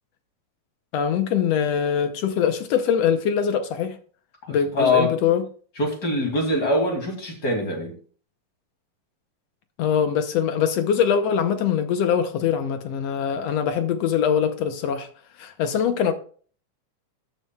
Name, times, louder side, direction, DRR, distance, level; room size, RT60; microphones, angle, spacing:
voice 1, 0.9-4.0 4.5-5.4 9.8-15.1 15.4-16.1, left 8 dB, 70° left, 1.8 m, -23 dB
voice 2, 4.7-5.1 5.8-7.9, left 2 dB, 35° left, 3.0 m, -23 dB
13.0 x 10.0 x 2.3 m
omnidirectional pair, 3.4 m